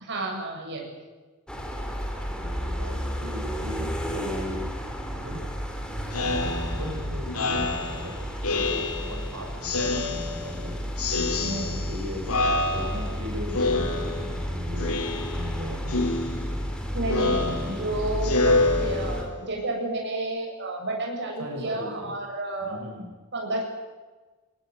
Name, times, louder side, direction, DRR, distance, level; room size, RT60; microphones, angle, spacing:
voice 1, 0.1-0.9 11.4-11.8 16.9-22.8 23.3-23.6, right 2 dB, 55° right, 0 dB, 7.8 m, -31 dB
sound 1, 1.5-19.2, equal, 5° left, 4.3 m, -32 dB
voice 2, 2.3-4.6 5.2-5.5 6.1-8.2 8.4-10.8 11.7-12.2 12.7-16.1 21.4-22.1 22.6-23.1, left 1 dB, 80° right, 1 dB, 7.2 m, -38 dB
Speech synthesizer, 6.1-9.3 9.6-10.6 11.0-12.0 12.3-13.2 13.5-14.4 14.8-15.6 15.9-19.4, left 3 dB, 80° left, 4.7 m, -27 dB
24.5 x 19.5 x 9.7 m, 1.3 s
head